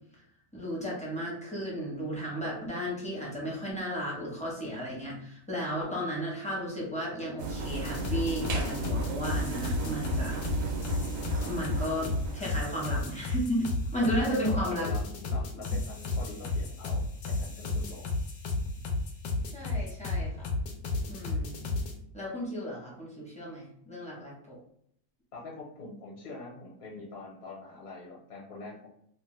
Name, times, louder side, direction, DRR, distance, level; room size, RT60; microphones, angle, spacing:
voice 1, 0.5-10.5 11.4-14.9 19.5-20.5 21.1-21.6 22.1-24.6, equal, 10° left, -5 dB, 0.5 m, -34 dB
sound 1, 7.4-12.4, right 3 dB, 70° right, 1.0 m, -35 dB
sound 2, 7.8-21.9, left 3 dB, 80° left, 1.1 m, -32 dB
voice 2, 14.0-15.0 15.3-18.1 25.3-28.9, left 3 dB, 65° left, -4 dB, 1.2 m, -44 dB
2.8 x 2.1 x 3.1 m, 0.70 s
omnidirectional pair, 1.6 m